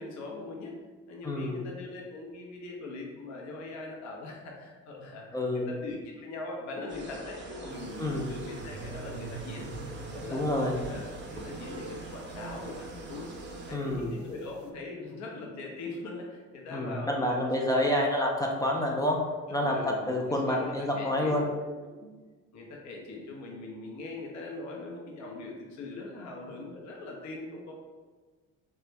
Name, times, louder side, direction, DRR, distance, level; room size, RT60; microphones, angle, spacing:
voice 1, 0.0-9.7 10.1-10.5 10.9-11.0 11.3-13.3 13.7-17.7 19.6-21.7 22.0-22.2 22.5-27.7, left 2 dB, 50° left, -1 dB, 0.7 m, -41 dB
voice 2, 1.2-1.6 5.3-5.7 8.0-8.3 10.3-10.7 13.7-14.1 16.7-19.2 19.5-21.5, left 1 dB, 10° left, -1 dB, 0.4 m, -28 dB
sound 1, 6.9-13.8, right 2 dB, 30° right, 0.7 m, -44 dB
sound 2, 7.7-14.7, right 4 dB, 70° right, 0.5 m, -45 dB
3.2 x 2.3 x 3.0 m, 1.4 s
hypercardioid pair, 55°, 37 cm